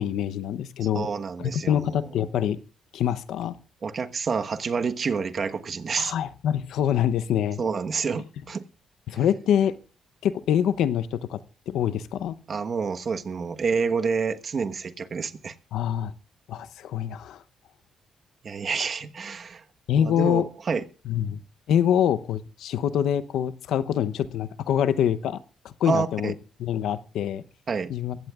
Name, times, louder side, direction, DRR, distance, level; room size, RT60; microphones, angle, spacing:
voice 1, 0.0-1.1 1.4-2.6 2.9-3.6 6.0-7.6 9.1-9.7 10.2-12.4 15.7-16.1 16.5-17.4 19.9-20.5 21.1-21.4 21.7-26.3 26.6-27.4 27.9-28.2, left 9 dB, 80° left, 13 dB, 0.8 m, -25 dB
voice 2, 0.9-2.0 3.8-6.1 7.6-8.6 12.5-15.5 18.4-19.6 20.0-20.8 25.8-26.3 27.7-27.9, right 5 dB, 45° right, 8 dB, 1.2 m, -28 dB
23.0 x 16.0 x 2.4 m, 0.36 s
cardioid pair, 90°, 0 cm